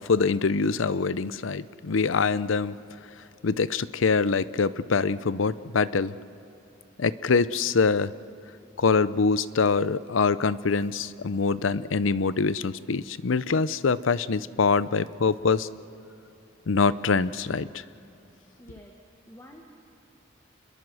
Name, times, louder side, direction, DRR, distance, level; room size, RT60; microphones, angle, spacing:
voice 1, 0.1-2.8 3.4-6.1 7.0-8.1 8.8-15.7 16.7-17.8, left 4 dB, 85° left, 17 dB, 0.6 m, -24 dB
voice 2, 18.6-19.0 19.3-19.7, equal, 15° left, 2 dB, 1.4 m, -48 dB
27.5 x 22.0 x 6.3 m, 2.8 s
head